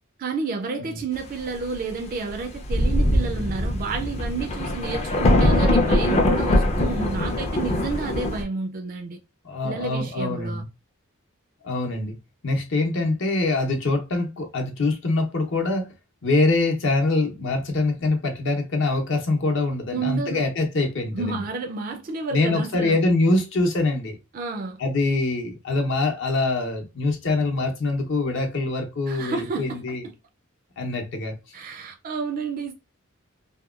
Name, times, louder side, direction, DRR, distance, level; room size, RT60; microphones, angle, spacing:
voice 1, 0.2-9.2 9.6-10.6 19.9-20.5 21.1-23.0 24.3-24.8 29.1-30.1 31.5-32.7, right 4 dB, 45° right, 0.3 m, -30 dB
Thunder, 2.3-2.4 2.7-8.4, left 1 dB, 30° left, 0.4 m, -22 dB
voice 2, 9.4-10.7 11.6-12.2 12.4-15.9 16.2-21.1 22.3-24.2 24.8-30.0 30.8-31.3, left 2 dB, 65° left, 0.7 m, -24 dB
2.8 x 2.2 x 2.3 m
head